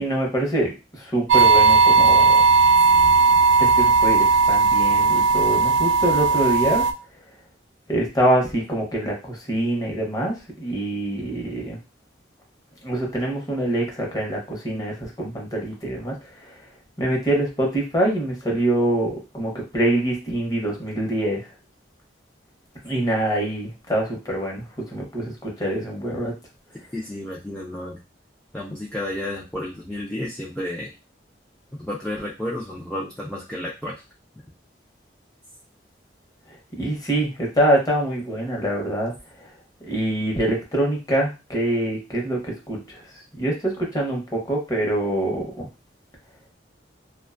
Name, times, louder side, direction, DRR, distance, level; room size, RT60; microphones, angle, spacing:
voice 1, 0.0-2.4 3.6-6.9 7.9-11.8 12.8-16.7 17.0-21.5 22.8-26.3 36.5-39.1 39.4-39.5 39.8-43.0 43.3-45.7, right 1 dB, 20° left, -1 dB, 0.8 m, -25 dB
sound 1, 1.3-6.9, right 4 dB, 80° right, 0.3 m, -16 dB
voice 2, 26.9-28.0 28.5-30.9 31.7-34.0, left 1 dB, 5° left, -5 dB, 0.4 m, -31 dB
2.5 x 2.2 x 2.4 m, 0.27 s
head